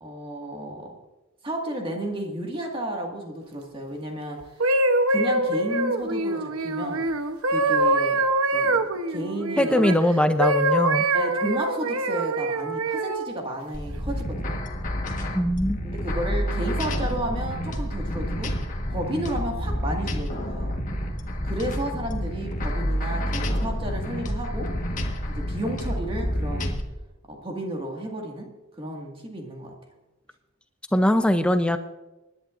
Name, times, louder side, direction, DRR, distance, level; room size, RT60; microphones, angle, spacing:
voice 1, 0.0-1.0 1.4-4.6 5.1-7.1 7.5-8.3 8.5-9.8 11.1-14.6 15.8-18.6 18.9-20.8 21.4-24.7 25.3-26.8 27.3-28.5 28.8-29.7, right 1 dB, 25° right, 1 dB, 1.9 m, -32 dB
sound 1, 4.4-10.0 10.4-13.3 13.9-14.2, right 2 dB, 85° right, 0.9 m, -24 dB
voice 2, 9.6-11.1 15.3-15.8 30.9-31.8, left 1 dB, 5° left, 8 dB, 0.5 m, -21 dB
sound 2, 13.7-26.8, equal, 35° left, 1.4 m, -29 dB
25.0 x 11.0 x 2.5 m, 1.1 s
head